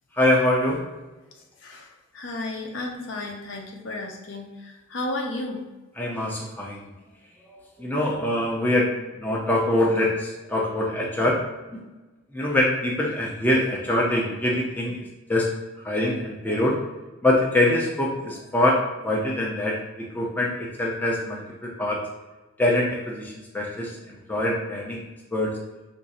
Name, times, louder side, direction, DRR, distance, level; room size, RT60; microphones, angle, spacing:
voice 1, 0.1-0.8 6.0-6.9 7.5-11.4 12.3-15.0 15.3-15.5 15.8-16.8 17.2-19.8 20.1-22.0 22.6-25.0 25.3-25.6, left 1 dB, 10° left, -3 dB, 0.4 m, -24 dB
voice 2, 1.6-5.6, left 2 dB, 60° left, 1 dB, 0.6 m, -33 dB
2.6 x 2.4 x 4.0 m, 1.1 s
head